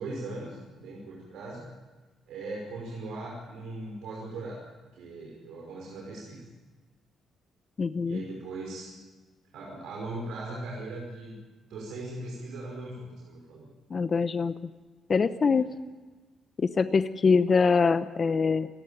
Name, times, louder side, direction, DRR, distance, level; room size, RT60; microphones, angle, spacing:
voice 1, 0.0-1.7 2.3-4.6 4.9-6.5 8.0-8.9 9.5-11.4 11.6-13.7 15.5-15.7, right 2 dB, 85° right, -2 dB, 5.5 m, -39 dB
voice 2, 7.8-8.2 13.9-14.5 15.1-15.7 16.6-18.7, left 5 dB, 40° left, 12 dB, 0.9 m, -24 dB
28.0 x 11.5 x 9.1 m, 1.3 s
cardioid pair, 100°, 0 cm